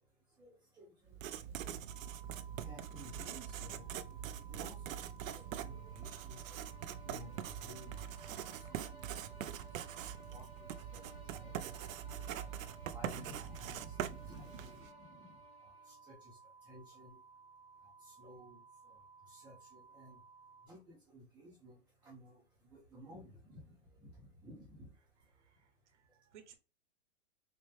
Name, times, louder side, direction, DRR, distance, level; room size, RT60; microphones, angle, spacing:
voice 1, 0.4-1.2 2.6-6.8 7.0-8.0 8.3-9.3 10.3-11.8 12.3-12.5 12.9-17.2 18.0-20.2 20.6-21.8 22.0-24.9, equal, 5° right, -8 dB, 0.4 m, -55 dB
Writing, 1.1-14.9, right 9 dB, 85° right, 0.6 m, -43 dB
sound 1, 1.9-20.7, right 5 dB, 20° left, 0.9 m, -60 dB
sound 2, 5.1-16.1, left 1 dB, 45° left, 1.2 m, -60 dB
voice 2, 25.4-26.5, right 9 dB, 60° right, 6 dB, 1.0 m, -61 dB
4.3 x 2.1 x 3.2 m, 0.32 s
hypercardioid pair, 155°, 39 cm